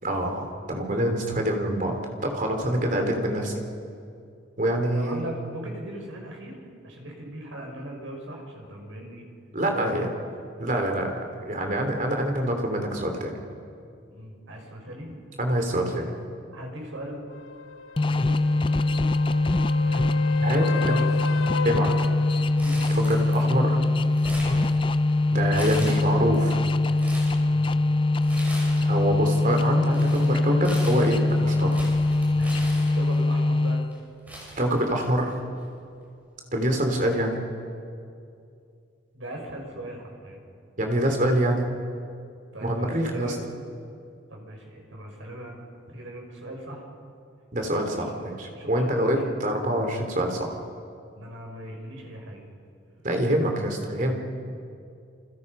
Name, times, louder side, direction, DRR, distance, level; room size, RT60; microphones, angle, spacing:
voice 1, 0.0-3.6 4.6-5.2 9.5-10.1 10.6-13.4 15.4-16.2 20.4-20.9 21.6-21.9 22.9-23.8 25.3-26.6 28.8-31.8 34.6-35.4 36.5-37.4 40.8-41.7 42.6-43.3 47.5-50.6 53.0-54.1, right 1 dB, 40° right, 3 dB, 3.4 m, -25 dB
voice 2, 2.6-3.0 4.9-6.6 6.8-9.3 9.7-10.3 14.1-15.1 15.7-15.8 16.5-17.2 18.0-18.5 19.8-20.2 20.6-21.2 21.5-22.1 22.6-23.0 23.4-23.6 24.4-24.6 27.5-27.7 32.3-33.8 39.1-40.4 42.5-43.4 44.3-45.6 45.9-46.9 47.8-49.3 51.1-52.4, right 1 dB, 75° right, 1 dB, 6.0 m, -39 dB
sound 1, 17.3-22.9 27.0-27.1, left 6 dB, 85° left, 0.7 m, -35 dB
sound 2, 18.0-34.1, left 2 dB, 25° left, 0.5 m, -23 dB
Crumpling crinkling, 22.6-23.6 23.9-25.1 25.5-26.4 26.8-27.4 28.2-29.0 29.3-33.3 33.9-34.0 34.3-35.3 35.6-35.7 36.7-36.9, equal, 10° right, 6.4 m, -39 dB
28.5 x 26.0 x 5.5 m, 2.5 s
head